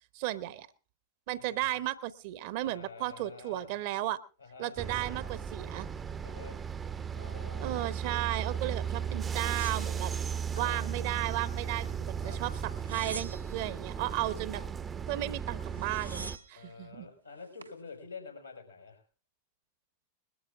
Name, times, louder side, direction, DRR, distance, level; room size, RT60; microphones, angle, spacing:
voice 1, 0.1-0.7 1.3-4.2 4.6-5.9 7.6-10.1 10.5-14.6 15.1-17.1, right 15 dB, 50° right, 17 dB, 0.9 m, -34 dB
voice 2, 1.4-1.7 2.6-3.7 4.4-4.8 6.2-6.6 7.1-7.8 10.5-10.8 12.2-12.4 14.0-14.2 16.6-19.0, left 4 dB, 85° left, 3 dB, 5.7 m, -48 dB
sound 1, 4.8-16.4, right 7 dB, 20° right, 0.7 m, -36 dB
sound 2, 9.3-10.7 11.1-11.9 12.6-13.7 15.3-15.4 15.6-16.6 17.3-17.8, right 3 dB, 85° right, 1.1 m, -46 dB
21.0 x 13.0 x 3.6 m, 0.34 s
figure-of-eight pair, 90°, 0 cm